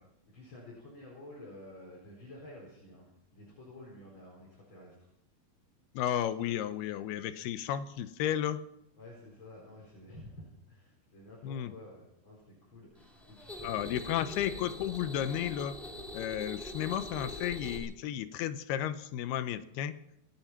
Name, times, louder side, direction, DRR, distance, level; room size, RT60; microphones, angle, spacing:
voice 1, 0.3-5.1 9.0-14.2, left 1 dB, 30° left, -4 dB, 4.9 m, -51 dB
voice 2, 5.9-8.6 11.4-11.7 13.6-15.8 16.1-20.0, left 10 dB, 85° left, 11 dB, 2.9 m, -33 dB
sound 1, 13.0-17.8, left 1 dB, ahead, 2.2 m, -43 dB
26.5 x 8.9 x 5.8 m, 0.79 s
omnidirectional pair, 4.5 m